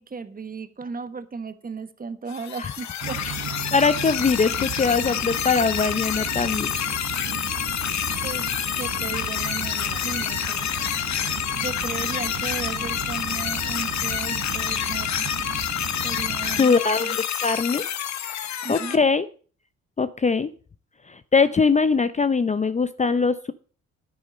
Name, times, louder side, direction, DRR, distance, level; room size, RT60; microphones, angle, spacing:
voice 1, 0.0-3.2 8.2-8.5 8.8-10.8 11.2-15.3 16.0-17.2 18.6-19.0, right 5 dB, 30° right, 11 dB, 1.2 m, -35 dB
sound 1, 2.3-19.0, left 10 dB, 65° left, 1.1 m, -28 dB
sound 2, 3.0-16.6, right 9 dB, 55° right, 1.1 m, -35 dB
voice 2, 3.7-6.7 16.6-17.8 18.7-19.3 20.0-20.5 21.1-23.5, left 4 dB, 25° left, 13 dB, 0.6 m, -21 dB
Splash splatter, 9.7-11.7 12.4-12.6 13.2-13.3, left 3 dB, 45° left, 3.5 m, -47 dB
9.4 x 9.4 x 5.2 m, 0.40 s
cardioid pair, 90°, 30 cm